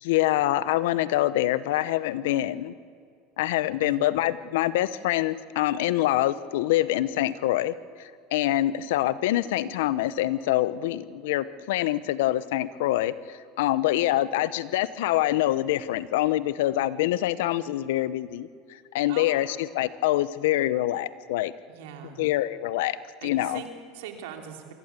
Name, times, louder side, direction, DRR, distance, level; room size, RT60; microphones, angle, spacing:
voice 1, 0.0-2.7 3.4-21.5 22.2-23.0 23.2-23.6, left 14 dB, 80° left, 16 dB, 0.8 m, -25 dB
voice 2, 21.7-22.2 23.2-24.7, right 8 dB, 80° right, 4 dB, 2.9 m, -41 dB
24.0 x 15.0 x 8.3 m, 2.2 s
supercardioid pair, 110°, 0 cm